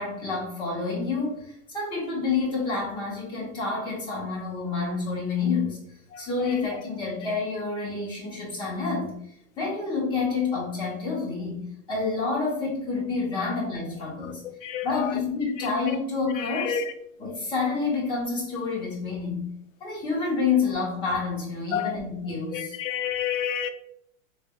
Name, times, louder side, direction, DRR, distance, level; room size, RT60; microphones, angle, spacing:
voice 1, 0.0-5.8 6.2-9.1 9.6-14.4 14.8-16.8 17.2-19.5 19.8-22.8, left 4 dB, 10° left, 1.0 m, -28 dB
voice 2, 6.1-6.7 14.4-15.1 16.4-16.8 21.7-21.9 22.5-23.7, left 9 dB, 65° left, 0.5 m, -30 dB
3.8 x 3.3 x 2.3 m
supercardioid pair, 170°, 42 cm